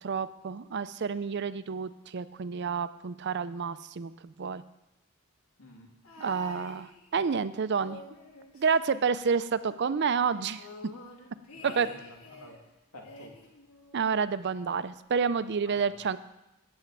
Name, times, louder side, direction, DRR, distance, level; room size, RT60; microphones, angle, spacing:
voice 1, 0.0-4.6 6.2-8.0 8.5-10.6 11.8-11.9 13.9-16.2, right 5 dB, 50° right, 14 dB, 0.4 m, -29 dB
voice 2, 5.6-5.9 11.5-12.6 12.9-13.4 15.8-16.0, left 2 dB, 90° left, 0 dB, 2.7 m, -48 dB
sound 1, 6.0-7.3 7.7-9.6 9.8-9.9 10.2-12.6 13.0-14.3 15.2-15.3, left 2 dB, 65° left, 1.9 m, -49 dB
9.0 x 8.8 x 7.4 m, 0.93 s
head